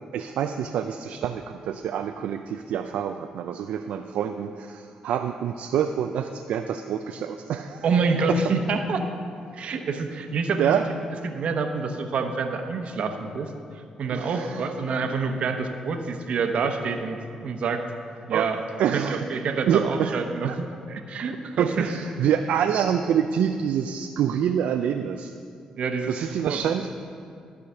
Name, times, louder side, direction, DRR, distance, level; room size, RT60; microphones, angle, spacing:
voice 1, 0.1-7.8 8.3-8.4 10.6-10.9 14.1-14.7 18.3-18.5 18.8-19.2 19.7-20.2 20.4-20.6 21.6-25.3 26.1-26.9, right 8 dB, 80° right, 6 dB, 0.3 m, -26 dB
voice 2, 7.8-9.0 9.5-10.7 11.2-17.8 18.3-18.6 18.9-21.8 25.8-26.6, right 4 dB, 65° right, 6 dB, 0.9 m, -27 dB
13.0 x 4.9 x 6.8 m, 2.4 s
cardioid pair, 90°, 2 cm